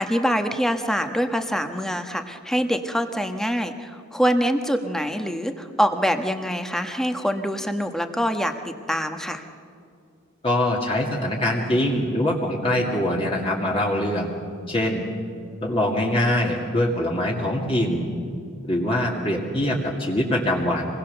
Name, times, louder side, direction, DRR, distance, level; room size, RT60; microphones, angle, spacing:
voice 1, 0.0-9.4, equal, ahead, 6 dB, 1.2 m, -25 dB
voice 2, 10.4-14.3 14.7-15.0 15.6-18.1 18.6-20.9, left 1 dB, 25° left, -2 dB, 2.3 m, -23 dB
26.0 x 20.5 x 6.8 m, 2.4 s
head